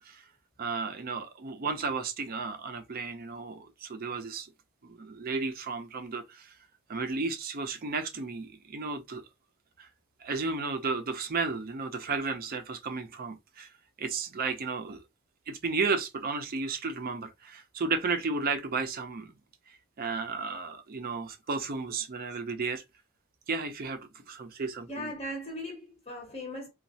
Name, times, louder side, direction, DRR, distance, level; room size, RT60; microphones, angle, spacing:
voice 1, 0.6-4.5 4.8-6.5 6.9-9.2 9.8-9.9 10.2-13.7 14.0-15.0 15.5-19.3 19.7-22.8 23.5-25.1, right 4 dB, 40° right, 0.5 m, -33 dB
voice 2, 24.9-26.7, equal, 30° left, 0.7 m, -38 dB
3.0 x 2.3 x 2.7 m
head